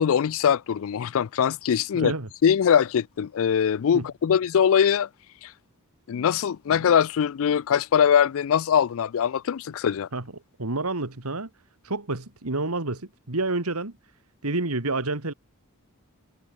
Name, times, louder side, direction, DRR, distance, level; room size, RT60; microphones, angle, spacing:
voice 1, 0.0-2.1 2.4-5.1 5.4-5.5 6.1-10.1, left 8 dB, 65° left, 0.4 m, -22 dB
voice 2, 1.9-2.3 3.9-4.1 10.1-10.2 10.6-11.5 11.8-13.9 14.4-15.3, right 2 dB, 80° right, 2.4 m, -28 dB
head